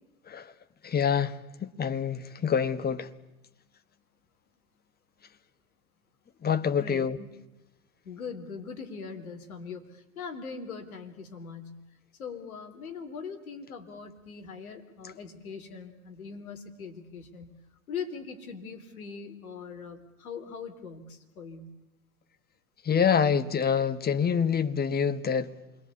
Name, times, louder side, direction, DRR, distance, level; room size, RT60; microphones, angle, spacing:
voice 1, 0.8-3.1 6.4-7.2 22.8-25.5, left 7 dB, 20° left, 10 dB, 1.5 m, -26 dB
voice 2, 6.8-7.3 8.0-11.8 12.2-17.6 17.9-21.7, left 5 dB, 75° left, 6 dB, 3.7 m, -41 dB
28.0 x 22.5 x 8.4 m, 1.0 s
figure-of-eight pair, 85°, 43 cm